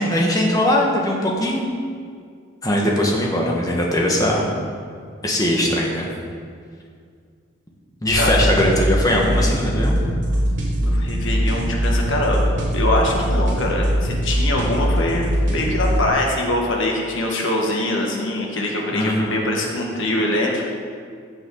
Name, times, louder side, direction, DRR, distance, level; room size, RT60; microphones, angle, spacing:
voice 1, 0.0-1.7 2.6-4.5 5.2-6.0 8.0-10.0 18.9-19.4, left 1 dB, 20° left, -2 dB, 1.5 m, -20 dB
sound 1, 8.1-16.1, equal, 60° right, 2.9 m, -21 dB
voice 2, 10.8-12.4 12.7-20.6, left 1 dB, 70° left, 0 dB, 1.7 m, -23 dB
14.5 x 7.3 x 4.0 m, 2.1 s
head